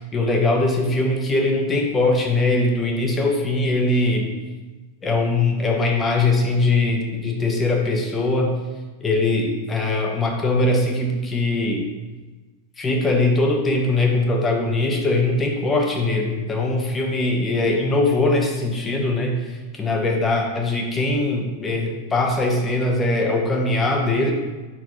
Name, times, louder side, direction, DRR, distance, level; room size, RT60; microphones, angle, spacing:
voice 1, 0.0-4.3 5.0-8.6 9.0-11.9 12.8-19.4 19.7-24.3, left 2 dB, 20° left, 1 dB, 1.3 m, -21 dB
8.8 x 5.8 x 3.1 m, 1.2 s
figure-of-eight pair, 90°, 0 cm